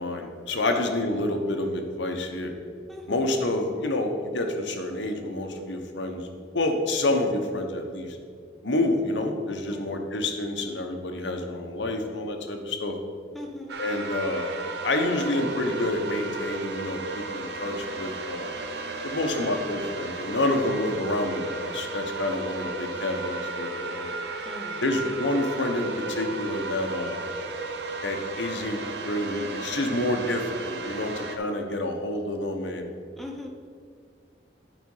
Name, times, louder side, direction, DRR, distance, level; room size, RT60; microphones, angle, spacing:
voice 1, 0.0-2.5 3.1-6.3 6.5-8.2 8.6-12.9 13.8-14.6 14.8-18.5 19.0-24.1 24.8-27.3 28.0-32.9, left 2 dB, 85° left, 4 dB, 1.0 m, -28 dB
voice 2, 2.9-3.3 9.7-9.9 13.3-13.8 24.4-24.8 33.2-33.5, left 1 dB, ahead, 0 dB, 0.8 m, -39 dB
sound 1, 13.7-31.4, right 3 dB, 70° right, 0.7 m, -34 dB
9.2 x 5.0 x 5.5 m, 2.1 s
head